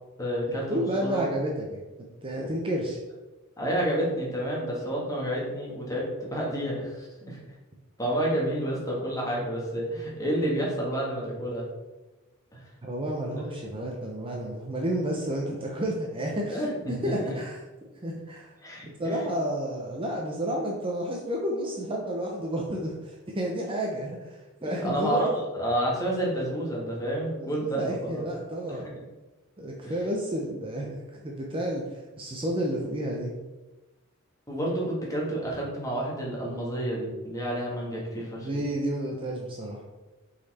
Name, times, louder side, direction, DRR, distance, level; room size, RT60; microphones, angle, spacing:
voice 1, 0.2-1.2 2.4-2.5 3.6-7.4 8.0-11.7 12.5-12.6 16.5-17.1 18.6-19.2 24.6-25.3 25.5-28.3 28.7-28.8 29.8-29.9 34.5-38.7, right 1 dB, 15° left, -4 dB, 1.8 m, -30 dB
voice 2, 0.7-1.8 2.2-3.0 12.8-16.6 16.9-17.6 18.0-18.5 18.9-25.2 27.4-28.9 29.6-33.3 38.4-39.8, equal, 25° right, -1 dB, 0.8 m, -31 dB
5.7 x 4.2 x 4.2 m, 1.1 s
head